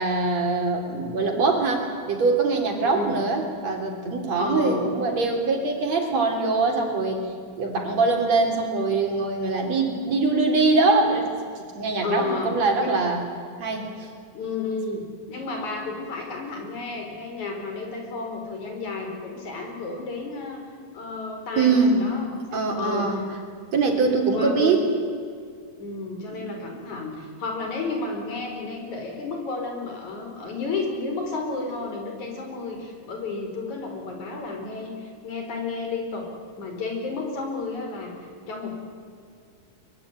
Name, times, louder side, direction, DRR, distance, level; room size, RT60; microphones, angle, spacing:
voice 1, 0.0-7.2 7.6-11.3 11.6-13.3 13.6-14.1 21.6-22.0 22.5-23.2 23.7-24.8 26.3-26.4, right 3 dB, 60° right, 3 dB, 4.5 m, -23 dB
voice 2, 2.8-3.3 4.4-4.9 12.0-13.0 14.3-20.6 20.9-22.4 22.7-23.2 24.3-24.8 25.8-36.3 36.6-38.8, left 3 dB, 70° left, 3 dB, 5.9 m, -32 dB
23.0 x 22.5 x 9.3 m, 2.3 s
omnidirectional pair, 3.5 m